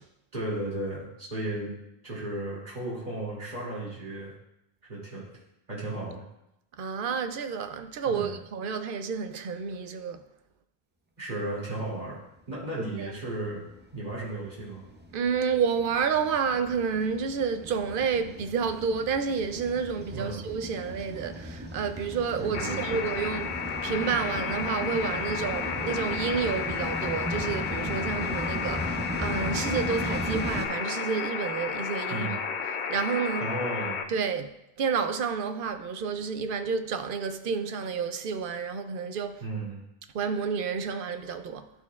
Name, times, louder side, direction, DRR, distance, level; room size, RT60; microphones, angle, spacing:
voice 1, 0.3-1.7 2.0-4.3 4.9-5.3 5.7-6.2 8.0-8.4 11.2-12.2 12.5-13.6 13.9-14.9 20.1-20.4 22.4-22.9 32.1-32.4 33.4-34.0 39.4-39.8, right 2 dB, 45° right, 2.6 m, -34 dB
voice 2, 6.8-10.2 12.8-13.1 15.1-32.3 32.9-33.6 34.1-39.4 40.1-41.7, right 6 dB, 60° right, 0.7 m, -30 dB
sound 1, 12.9-30.7, equal, 15° right, 0.3 m, -37 dB
sound 2, 22.5-34.0, left 6 dB, 55° left, 0.6 m, -32 dB
12.0 x 4.3 x 2.4 m
omnidirectional pair, 1.1 m